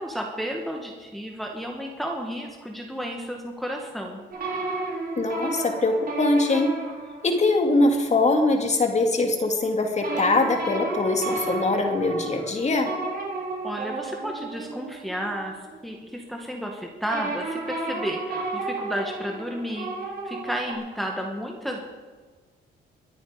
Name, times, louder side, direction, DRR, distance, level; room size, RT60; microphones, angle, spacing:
voice 1, 0.0-4.2 13.6-15.6 15.8-19.9 20.2-21.8, equal, ahead, 0 dB, 1.9 m, -32 dB
sound 1, 4.3-7.7 10.0-15.8 17.1-20.7, right 3 dB, 50° right, 3.6 m, -32 dB
voice 2, 5.2-6.7 7.2-12.9, left 2 dB, 35° left, 4 dB, 2.4 m, -22 dB
22.5 x 8.9 x 5.2 m, 1.5 s
cardioid pair, 90°, 20 cm